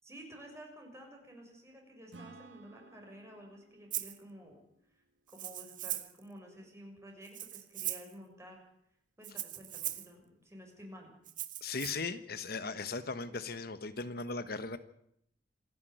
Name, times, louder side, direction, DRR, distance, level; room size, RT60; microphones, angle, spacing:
voice 1, 0.0-4.6 4.9-8.6 9.2-11.1, equal, 15° right, 2 dB, 6.3 m, -52 dB
Acoustic guitar / Strum, 2.1-5.7, right 3 dB, 80° right, 2.1 m, -57 dB
Rattle (instrument), 3.9-4.2 5.3-6.2 7.2-8.1 9.2-10.1 11.3-11.9, right 13 dB, 50° right, 1.4 m, -39 dB
voice 2, 11.6-14.8, left 4 dB, 60° left, 11 dB, 1.3 m, -38 dB
27.5 x 10.5 x 9.3 m, 0.74 s
head